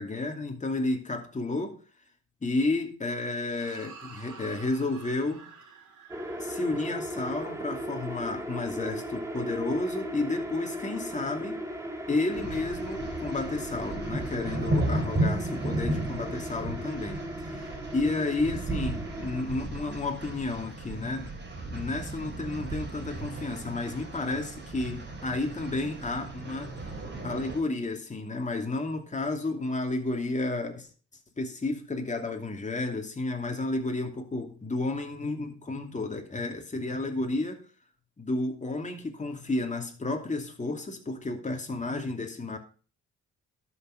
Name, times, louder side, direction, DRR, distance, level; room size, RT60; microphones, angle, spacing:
voice 1, 0.0-1.8 2.4-5.5 6.4-11.6 12.1-17.6 17.9-21.3 21.7-26.9 27.2-30.9 31.4-37.6 38.2-42.6, left 2 dB, 25° left, 2.8 m, -32 dB
sound 1, 3.5-10.0, right 5 dB, 75° right, 3.9 m, -51 dB
sound 2, 6.1-19.4, right 1 dB, 10° right, 2.4 m, -37 dB
sound 3, 12.3-27.6, right 1 dB, 35° right, 4.1 m, -34 dB
12.5 x 6.9 x 5.2 m
cardioid pair, 90°, 30 cm